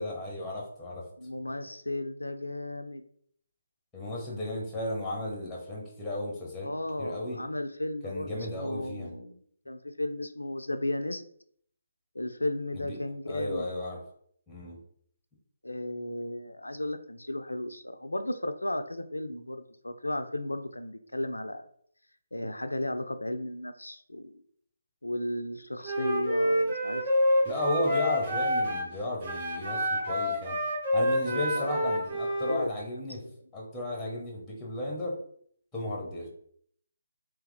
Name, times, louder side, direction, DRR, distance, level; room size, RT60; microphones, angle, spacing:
voice 1, 0.0-1.0 3.9-6.7 7.0-7.4 8.0-9.1 12.7-13.0 13.3-14.0 14.5-14.8 27.4-30.6 30.9-33.2 33.5-35.2 35.7-36.3, left 1 dB, 5° left, -2 dB, 1.3 m, -34 dB
voice 2, 1.2-3.0 6.6-11.2 12.1-13.7 15.6-21.7 22.3-24.4 25.0-27.0 31.3-31.8 32.5-32.7, left 1 dB, 85° left, 8 dB, 0.4 m, -34 dB
Wind instrument woodwind instrument, 25.8-28.9 29.2-32.6, left 1 dB, 40° right, 1.2 m, -28 dB
3.5 x 3.3 x 3.4 m, 0.63 s
figure-of-eight pair, 145°, 0 cm